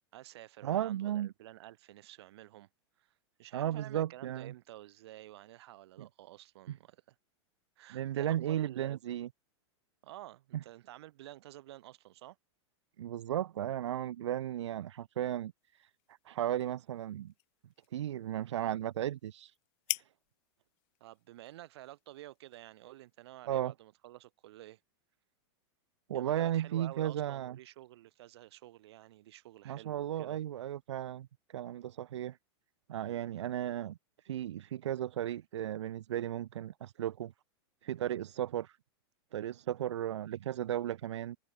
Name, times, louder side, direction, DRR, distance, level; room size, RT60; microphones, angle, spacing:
voice 1, 0.1-2.7 3.0-3.1 3.4-7.2 7.8-9.0 10.0-12.4 21.0-24.8 26.1-30.4, right 15 dB, 65° right, 7.8 m, -51 dB
voice 2, 0.6-1.3 3.5-4.5 6.0-6.1 6.7-6.8 7.9-9.3 13.0-15.9 16.2-17.3 17.9-19.5 19.9-20.0 23.5-23.7 26.1-27.6 29.6-31.3 31.5-32.4 32.9-34.0 34.2-37.3 37.8-38.8 39.3-41.4, right 11 dB, 90° right, 1.0 m, -35 dB
sound 1, 15.6-23.3, left 30 dB, 40° left, 1.5 m, -47 dB
supercardioid pair, 145°, 14 cm